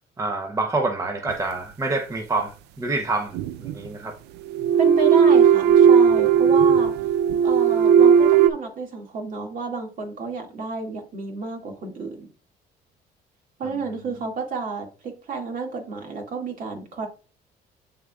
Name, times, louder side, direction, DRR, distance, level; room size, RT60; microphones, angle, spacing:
voice 1, 0.2-2.5 2.8-4.1, right 3 dB, 20° right, 0.7 m, -27 dB
sound 1, 1.3-1.4 3.3-3.9 4.5-8.5, right 7 dB, 85° right, 0.4 m, -16 dB
voice 2, 4.8-6.9 7.4-12.3 13.6-17.1, right 4 dB, 55° right, 2.0 m, -31 dB
11.0 x 3.7 x 2.3 m
cardioid pair, 110°, 17 cm